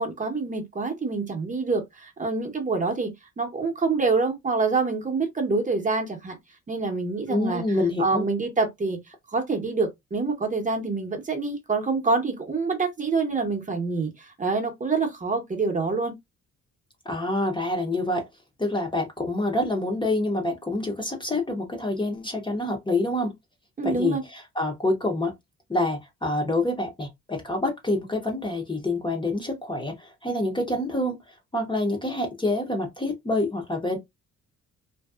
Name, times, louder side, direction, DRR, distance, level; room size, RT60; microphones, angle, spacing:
voice 1, 0.0-3.1 3.4-6.4 6.7-7.6 8.0-9.0 9.3-16.1 23.8-24.2, right 4 dB, 25° right, 0.8 m, -26 dB
voice 2, 7.3-8.3 17.1-18.2 18.6-23.3 23.8-25.3 25.7-34.0, left 2 dB, 15° left, 0.7 m, -27 dB
2.6 x 2.2 x 2.3 m
cardioid pair, 90°, 30 cm